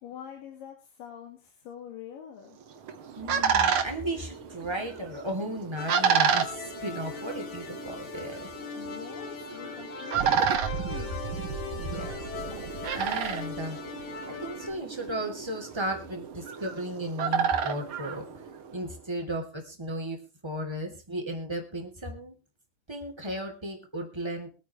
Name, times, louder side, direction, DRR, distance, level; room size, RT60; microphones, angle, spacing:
voice 1, 0.0-2.6 8.7-11.3, left 9 dB, 90° left, 2 dB, 3.6 m, -45 dB
sound 1, 2.6-18.9, right 7 dB, 55° right, 1.7 m, -31 dB
voice 2, 3.2-8.5 11.7-12.2 13.0-13.8 14.3-18.2 18.7-22.3 22.9-24.5, right 1 dB, 10° right, 3 dB, 2.6 m, -35 dB
sound 2, 5.8-14.7, left 6 dB, 65° left, 3.5 m, -40 dB
sound 3, 10.1-14.8, right 8 dB, 80° right, 2.6 m, -37 dB
24.0 x 9.2 x 3.2 m, 0.31 s
omnidirectional pair, 3.8 m